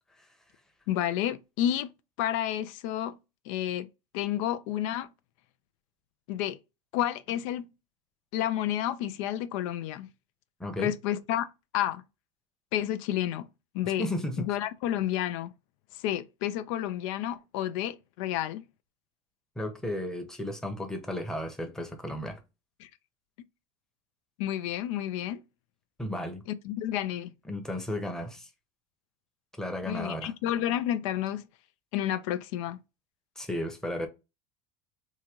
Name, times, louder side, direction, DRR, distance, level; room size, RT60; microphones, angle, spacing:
voice 1, 0.9-1.9 2.2-3.2 3.5-3.9 4.1-5.1 6.3-6.6 6.9-7.7 8.3-10.1 10.8-11.5 11.7-12.0 12.7-13.5 13.7-14.1 14.4-15.5 16.0-18.6 24.4-25.4 26.6-27.3 29.9-31.4 31.9-32.8, left 12 dB, 80° left, 0.5 m, -30 dB
voice 2, 10.6-10.9 13.8-14.5 19.6-22.4 26.0-26.4 27.5-28.5 29.6-30.3 33.4-34.1, left 1 dB, 5° left, 0.8 m, -34 dB
3.7 x 2.8 x 3.0 m
cardioid pair, 140°, 16 cm